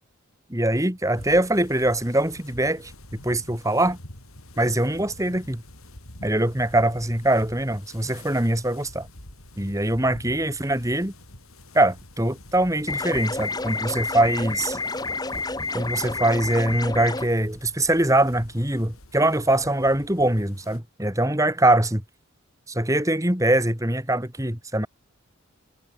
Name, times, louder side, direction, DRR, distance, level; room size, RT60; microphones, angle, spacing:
voice 1, 0.5-2.9 3.2-4.0 4.6-5.6 6.2-9.1 9.6-11.1 11.7-14.8 15.7-22.0 22.7-24.9, right 1 dB, 15° right, 2.8 m, -23 dB
sound 1, 1.1-20.8, left 1 dB, 90° left, 6.6 m, -46 dB
sound 2, 12.9-17.3, left 3 dB, 20° left, 2.8 m, -29 dB
head